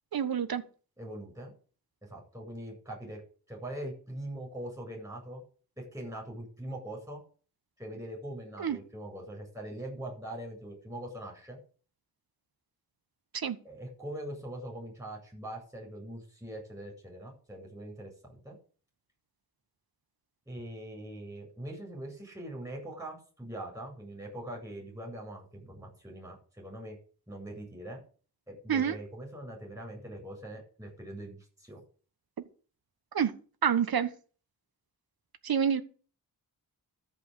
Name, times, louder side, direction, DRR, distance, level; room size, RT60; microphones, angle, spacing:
voice 1, 0.1-0.6 8.6-8.8 13.3-13.6 28.7-29.0 33.1-33.3 33.6-34.1 35.4-35.8, right 8 dB, 65° right, 10 dB, 1.4 m, -27 dB
voice 2, 1.0-1.5 2.1-3.2 3.5-5.4 5.8-7.2 7.8-11.6 13.6-18.6 20.5-27.0 27.3-28.0 28.5-31.8, right 1 dB, 10° right, -1 dB, 7.9 m, -42 dB
13.5 x 5.6 x 8.2 m, 0.40 s
wide cardioid pair, 110°, 39 cm